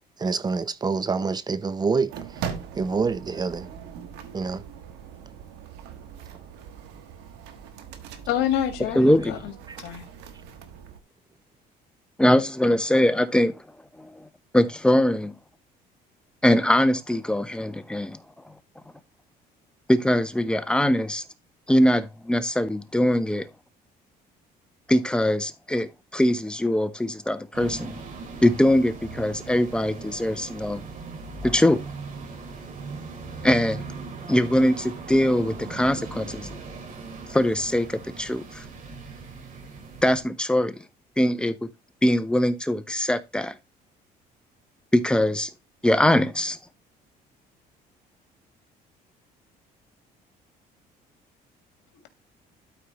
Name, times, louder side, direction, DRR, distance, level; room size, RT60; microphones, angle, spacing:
voice 1, 0.2-2.5 2.7-3.7 4.3-4.6 9.7-9.8, right 4 dB, 25° right, 0.7 m, -27 dB
sound 1, 2.1-11.0, right 8 dB, 90° right, 1.4 m, -40 dB
voice 2, 8.3-10.1, left 10 dB, 85° left, 2.0 m, -28 dB
voice 3, 8.9-9.4 12.2-13.6 14.0-14.2 14.5-15.3 16.4-18.2 19.9-21.2 21.7-23.5 24.9-28.0 28.4-30.8 31.4-31.8 33.4-33.8 34.3-36.5 37.3-38.6 40.0-40.7 41.2-41.6 42.0-43.5 44.9-45.5 45.8-46.6, left 1 dB, 5° left, 0.9 m, -22 dB
sound 2, 27.5-40.2, right 4 dB, 50° right, 2.5 m, -39 dB
12.5 x 4.7 x 3.1 m
cardioid pair, 110°, 17 cm